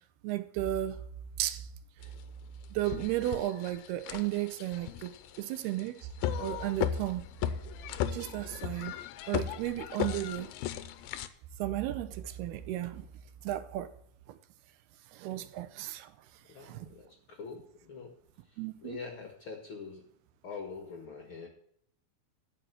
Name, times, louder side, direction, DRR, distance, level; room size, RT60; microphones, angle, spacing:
voice 1, 0.2-1.0 1.4-1.7 2.7-5.1 5.4-6.0 6.4-7.2 8.1-9.0 9.3-10.5 11.6-13.1 13.4-13.9 15.1-16.1 16.6-16.9 18.6-19.0, right 14 dB, 85° right, 2.8 m, -34 dB
sound 1, 2.0-2.1 2.6-11.3, left 10 dB, 80° left, 2.3 m, -36 dB
voice 2, 16.4-18.1 18.4-20.1 20.4-21.5, left 5 dB, 50° left, 1.6 m, -44 dB
12.5 x 5.9 x 7.9 m
omnidirectional pair, 4.4 m